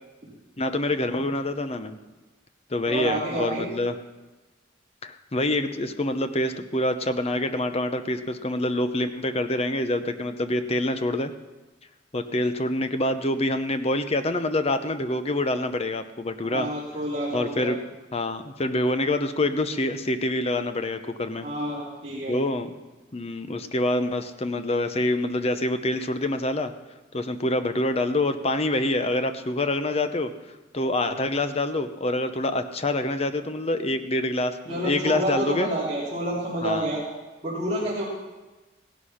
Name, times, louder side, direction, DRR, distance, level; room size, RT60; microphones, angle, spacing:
voice 1, 0.6-2.0 2.7-3.9 5.0-11.3 12.1-16.7 17.3-17.8 18.1-21.5 22.3-22.7 23.1-26.7 27.1-30.3 30.7-35.7 36.6-36.9, left 1 dB, 35° left, 9 dB, 0.8 m, -26 dB
voice 2, 2.8-3.7 16.4-17.7 21.4-22.4 31.0-31.2 34.7-37.0 37.4-38.0, right 1 dB, 30° right, -9 dB, 3.2 m, -29 dB
16.5 x 11.5 x 5.7 m, 1.2 s
head